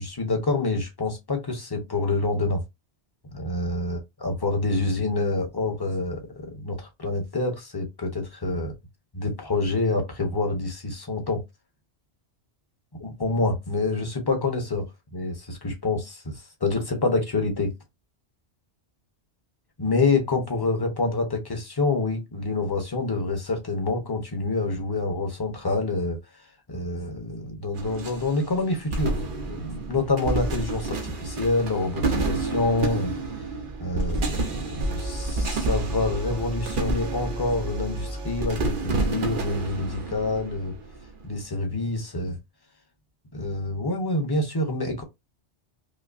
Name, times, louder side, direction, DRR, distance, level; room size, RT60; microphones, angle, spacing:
voice 1, 0.0-2.6 3.3-8.7 9.1-11.4 13.0-14.8 15.1-17.7 19.8-26.2 26.7-33.1 33.8-40.7 41.2-42.4 43.3-45.0, left 2 dB, 20° left, 0.9 m, -27 dB
sound 1, 27.7-41.3, right 2 dB, 55° right, 0.8 m, -29 dB
5.2 x 2.1 x 2.5 m
omnidirectional pair, 1.1 m